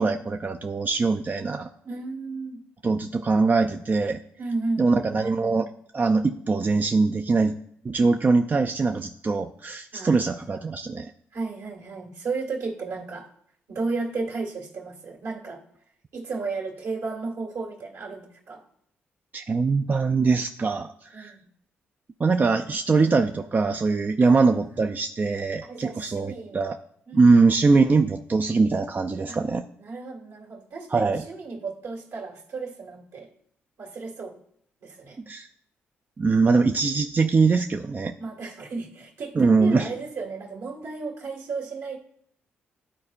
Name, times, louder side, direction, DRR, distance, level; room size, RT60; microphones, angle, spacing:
voice 1, 0.0-1.7 2.8-4.2 4.8-5.7 5.9-7.5 7.8-11.1 19.3-21.3 22.2-26.8 27.1-29.6 30.9-31.2 35.3-35.5 36.2-38.1 39.4-39.9, right 4 dB, 35° right, 5 dB, 0.4 m, -22 dB
voice 2, 1.8-2.6 4.4-5.3 9.9-10.4 11.3-13.3 13.7-15.6 16.1-18.6 21.1-21.4 24.2-24.7 25.6-26.6 27.1-27.5 29.3-29.4 29.8-33.3 33.8-34.4 34.8-35.2 38.2-42.0, right 3 dB, 65° right, 0 dB, 2.0 m, -34 dB
12.0 x 4.3 x 2.5 m, 0.66 s
hypercardioid pair, 50°, 5 cm